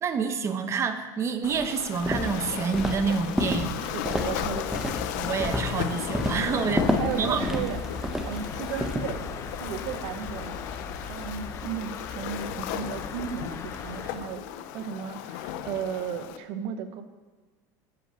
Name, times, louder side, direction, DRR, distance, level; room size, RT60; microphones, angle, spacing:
voice 1, 0.0-3.8 5.2-7.7, right 5 dB, 30° right, 8 dB, 1.0 m, -28 dB
Waves surf, 1.4-16.4, left 11 dB, 75° left, 0.8 m, -36 dB
Walk footsteps, 2.0-9.0, equal, 5° right, 1.2 m, -30 dB
voice 2, 3.8-5.0 6.6-7.8 8.2-9.3 9.6-10.5 11.0-14.5 14.7-17.0, right 8 dB, 65° right, 9 dB, 1.2 m, -35 dB
sound 1, 4.4-14.1, left 5 dB, 30° left, 1.2 m, -39 dB
13.0 x 5.0 x 8.8 m, 1.3 s
supercardioid pair, 130°, 10 cm